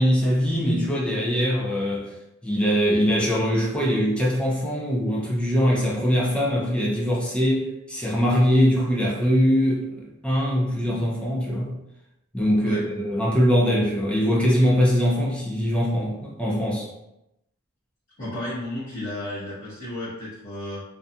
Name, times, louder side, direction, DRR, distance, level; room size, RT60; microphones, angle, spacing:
voice 1, 0.0-2.1 2.4-11.8 12.3-16.9, equal, 5° left, -4 dB, 0.5 m, -22 dB
voice 2, 18.2-20.8, left 1 dB, 40° left, -13 dB, 1.0 m, -33 dB
2.6 x 2.3 x 2.4 m, 0.86 s
head